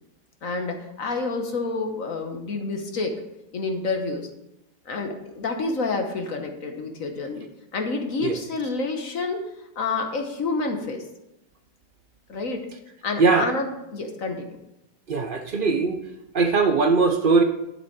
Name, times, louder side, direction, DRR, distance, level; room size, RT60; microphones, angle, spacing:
voice 1, 0.4-3.2 3.5-4.3 4.9-7.4 7.7-9.4 9.8-11.0 12.3-12.7 13.0-14.6, left 3 dB, 55° left, 5 dB, 1.3 m, -28 dB
voice 2, 15.1-16.0 16.3-17.4, right 4 dB, 60° right, 6 dB, 0.5 m, -20 dB
10.0 x 7.3 x 4.7 m, 0.88 s
omnidirectional pair, 1.9 m